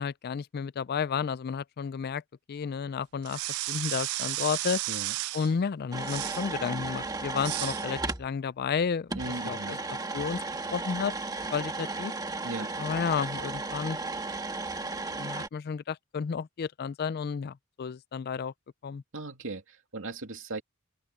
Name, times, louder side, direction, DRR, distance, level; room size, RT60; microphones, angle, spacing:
voice 1, 0.0-2.2 2.5-4.8 5.3-9.1 9.5-9.8 10.1-10.4 10.7-11.1 11.5-12.1 12.8-14.0 14.8-18.5 18.8-19.0, left 6 dB, 45° left, 0.4 m, -32 dB
sound 1, 3.2-5.5 6.0-6.5 7.4-7.9, right 19 dB, 80° right, 0.3 m, -33 dB
sound 2, 5.9-8.3 9.1-15.5, right 3 dB, 15° right, 1.5 m, -35 dB
voice 2, 9.1-9.9 12.4-12.7 19.1-20.6, right 2 dB, 65° right, 2.9 m, -38 dB
open air
head